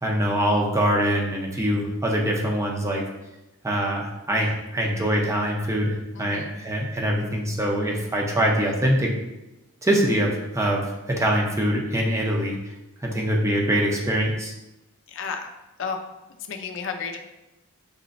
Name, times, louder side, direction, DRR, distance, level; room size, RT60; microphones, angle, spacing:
voice 1, 0.0-3.0 3.6-9.3 9.8-12.6 13.0-14.5, equal, 15° right, -1 dB, 0.6 m, -24 dB
voice 2, 6.1-6.5 15.1-15.5 15.8-16.0 16.5-17.2, left 5 dB, 60° left, 5 dB, 0.5 m, -32 dB
6.7 x 3.0 x 2.5 m, 0.99 s
head